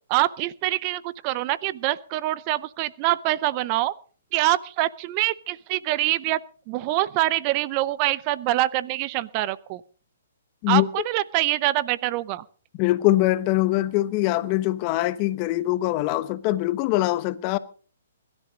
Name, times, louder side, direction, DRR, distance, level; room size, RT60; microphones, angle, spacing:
voice 1, 0.1-3.9 4.3-6.4 6.7-9.8 10.7-12.4, right 16 dB, 35° right, 0.6 m, -25 dB
voice 2, 12.8-17.6, left 16 dB, 35° left, 1.0 m, -23 dB
21.5 x 12.5 x 4.0 m
hypercardioid pair, 140°, 0 cm